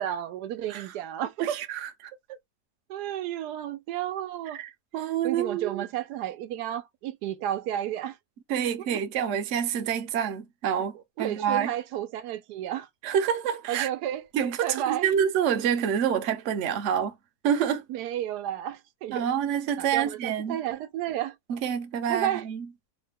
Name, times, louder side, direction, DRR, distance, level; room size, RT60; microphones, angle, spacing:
voice 1, 0.0-1.6 2.9-4.6 5.2-8.2 11.2-12.9 13.7-14.3 14.6-15.1 17.9-19.3 19.8-21.4 22.1-22.5, right 11 dB, 85° right, 1.2 m, -32 dB
voice 2, 1.4-1.9 4.5-5.8 8.5-11.7 13.0-13.9 14.3-17.1 17.4-17.8 19.1-20.6 21.5-22.7, right 8 dB, 60° right, 0.9 m, -27 dB
3.1 x 2.1 x 3.4 m
omnidirectional pair, 1.7 m